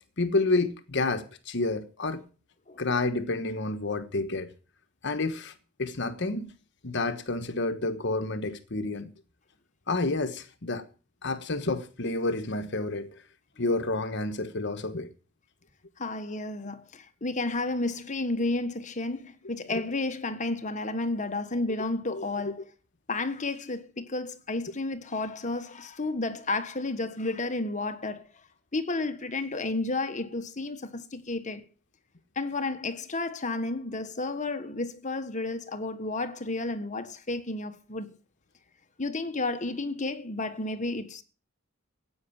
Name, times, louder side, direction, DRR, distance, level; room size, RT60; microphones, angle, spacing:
voice 1, 0.2-2.2 2.8-4.5 5.0-5.5 5.8-6.5 6.8-9.1 9.9-10.8 11.2-13.2 13.6-15.1 22.1-22.2, left 2 dB, 60° left, 1.3 m, -29 dB
voice 2, 16.0-22.6 23.1-28.2 28.7-31.6 32.3-38.1 39.0-41.2, left 2 dB, 35° left, 1.4 m, -32 dB
15.5 x 9.1 x 7.3 m
head